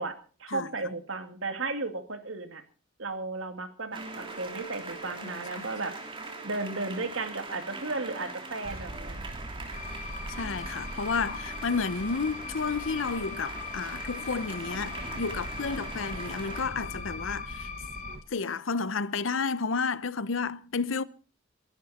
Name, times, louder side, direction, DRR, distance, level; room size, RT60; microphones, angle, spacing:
voice 1, 0.0-2.6 3.0-5.9 6.4-9.2, right 3 dB, 70° right, 2.3 m, -34 dB
sound 1, 3.9-16.6, right 3 dB, 25° right, 3.1 m, -42 dB
voice 2, 5.2-5.7 10.3-17.7 18.3-21.0, left 4 dB, 70° left, 0.7 m, -31 dB
sound 2, 8.6-18.2, right 1 dB, 45° right, 1.2 m, -43 dB
sound 3, 9.7-18.2, left 6 dB, 40° left, 2.4 m, -41 dB
22.5 x 11.0 x 4.3 m
head